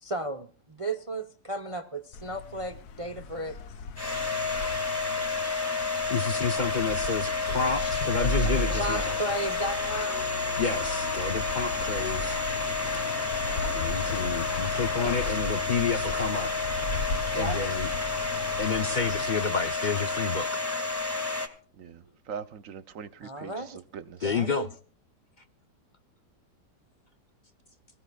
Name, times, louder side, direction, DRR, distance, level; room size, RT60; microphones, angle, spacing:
voice 1, 0.0-3.6 7.1-7.4 7.8-8.0 8.7-10.3 14.0-14.7 15.2-15.4 15.9-16.1 16.6-16.7 17.3-18.0 19.1-19.4 20.4-20.5 23.2-23.8 24.2-24.7, right 1 dB, 30° right, 0.6 m, -36 dB
sound 1, 2.1-20.3, left 5 dB, 65° left, 1.3 m, -37 dB
Domestic sounds home sounds, 4.0-21.5, left 3 dB, 15° left, 1.9 m, -30 dB
voice 2, 6.1-9.1 10.6-12.4 13.7-16.5 17.3-17.9 18.6-20.5 24.2-24.7, left 5 dB, 45° left, 0.6 m, -30 dB
sound 2, 8.2-11.5 11.8-11.9 12.1-12.2, right 1 dB, 30° left, 2.7 m, -34 dB
voice 3, 21.8-24.3, right 7 dB, 60° right, 1.0 m, -42 dB
24.0 x 15.0 x 2.4 m
omnidirectional pair, 1.8 m